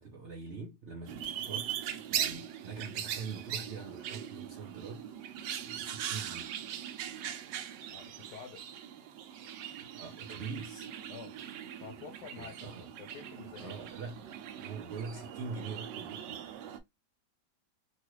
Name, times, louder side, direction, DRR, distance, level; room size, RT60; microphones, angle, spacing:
voice 1, 0.0-5.3 5.7-6.5 9.9-10.9 12.4-12.9 13.6-16.5, right 4 dB, 60° right, 0.7 m, -44 dB
sound 1, 1.1-16.8, right 10 dB, 90° right, 1.2 m, -40 dB
voice 2, 7.9-8.6 11.1-11.3 11.8-13.8, left 7 dB, 80° left, 1.2 m, -48 dB
3.1 x 2.4 x 2.9 m
omnidirectional pair, 1.8 m